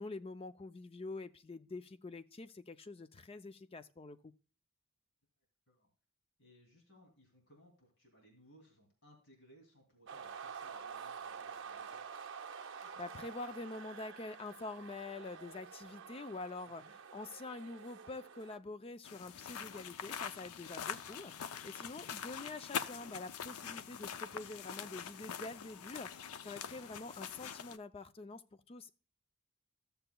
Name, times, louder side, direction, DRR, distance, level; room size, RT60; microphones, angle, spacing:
voice 1, 0.0-4.3 12.8-28.9, left 3 dB, 25° left, 0.4 m, -46 dB
voice 2, 6.4-12.1 16.6-16.9 22.0-22.1, equal, 55° left, 2.6 m, -64 dB
sound 1, 10.1-18.6, right 6 dB, 55° right, 0.7 m, -49 dB
sound 2, 11.8-16.2, left 2 dB, 25° right, 4.0 m, -64 dB
sound 3, 19.0-27.8, left 8 dB, 80° left, 0.5 m, -44 dB
14.5 x 6.7 x 2.2 m
head